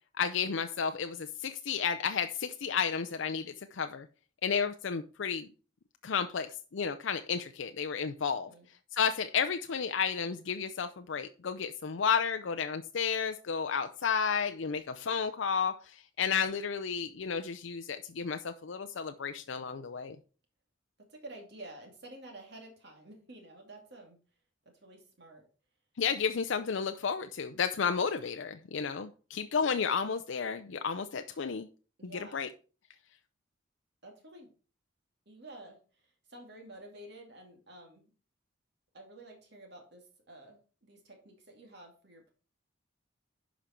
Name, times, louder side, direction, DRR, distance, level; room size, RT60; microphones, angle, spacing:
voice 1, 0.2-4.1 4.4-5.5 6.0-8.5 8.9-20.2 26.0-31.7 32.0-32.5, left 6 dB, 70° left, 0.5 m, -32 dB
voice 2, 8.3-8.7 21.1-24.2 24.8-25.5 32.0-32.5 34.0-34.5 35.3-38.1 38.9-42.3, right 1 dB, 55° right, 2.5 m, -51 dB
11.0 x 5.2 x 4.4 m
head